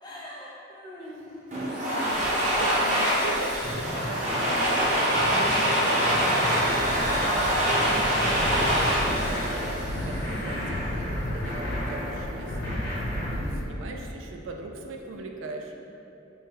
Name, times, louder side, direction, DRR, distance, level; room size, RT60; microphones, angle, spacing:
voice 1, 0.0-2.8 13.3-14.1, equal, 20° left, -6 dB, 0.5 m, -43 dB
Domestic sounds home sounds, 1.5-10.4, equal, 40° right, 0.7 m, -25 dB
voice 2, 2.0-15.7, right 2 dB, 80° right, 2 dB, 0.3 m, -41 dB
sound 1, 2.1-13.7, left 1 dB, 85° left, 0.3 m, -36 dB
sound 2, 3.6-13.3, equal, 55° left, 0.8 m, -34 dB
3.1 x 2.2 x 3.2 m, 2.9 s
head